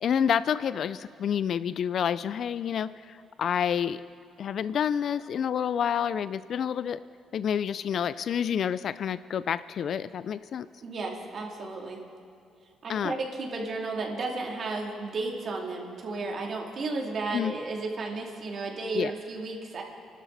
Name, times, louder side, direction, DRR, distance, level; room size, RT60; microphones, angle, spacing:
voice 1, 0.0-4.0 4.4-7.0 7.3-10.7 12.9-13.1 17.3-17.5 19.0-19.1, left 8 dB, 60° left, 15 dB, 0.4 m, -28 dB
voice 2, 10.8-12.0 12.8-19.8, right 3 dB, 55° right, 0 dB, 2.9 m, -33 dB
26.5 x 12.5 x 4.1 m, 2.5 s
cardioid pair, 90°, 0 cm